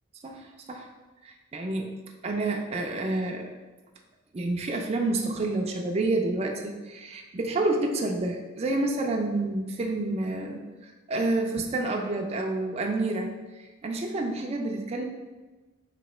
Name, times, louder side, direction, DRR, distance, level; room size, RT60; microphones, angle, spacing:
voice 1, 0.2-0.9 1.2-1.9 2.2-3.5 4.3-15.1, right 2 dB, 30° right, 2 dB, 0.3 m, -29 dB
3.0 x 2.8 x 4.2 m, 1.2 s
head